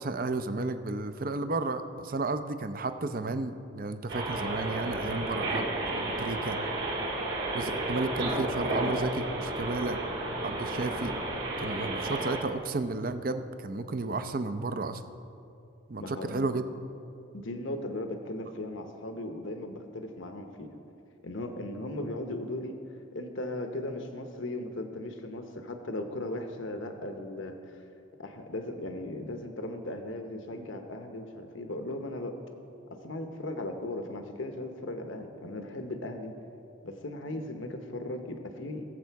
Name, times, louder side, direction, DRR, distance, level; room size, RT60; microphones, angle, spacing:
voice 1, 0.0-6.6 7.5-10.0 10.4-11.1 11.6-15.0 15.9-16.6, right 3 dB, 45° right, 10 dB, 0.6 m, -32 dB
sound 1, 4.1-12.4, right 2 dB, 70° right, 2.8 m, -32 dB
voice 2, 16.0-16.5 17.3-20.7 21.2-22.8 23.1-27.8 28.2-32.4 32.9-36.3 36.8-38.8, left 1 dB, 70° left, 5 dB, 0.9 m, -37 dB
21.5 x 7.5 x 4.6 m, 2.7 s
head